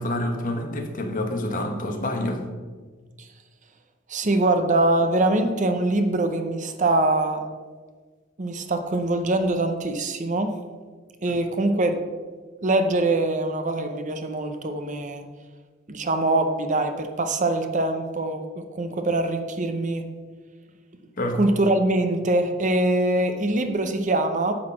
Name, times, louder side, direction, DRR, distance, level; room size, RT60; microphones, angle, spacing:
voice 1, 0.0-2.4 11.3-11.4 21.2-21.4, left 1 dB, 40° left, 4 dB, 1.1 m, -27 dB
voice 2, 4.1-7.5 8.4-10.5 11.2-12.0 12.6-15.2 15.9-18.4 18.7-20.0 21.4-24.5, right 2 dB, 35° right, 7 dB, 0.7 m, -23 dB
9.8 x 4.0 x 7.2 m, 1.5 s
head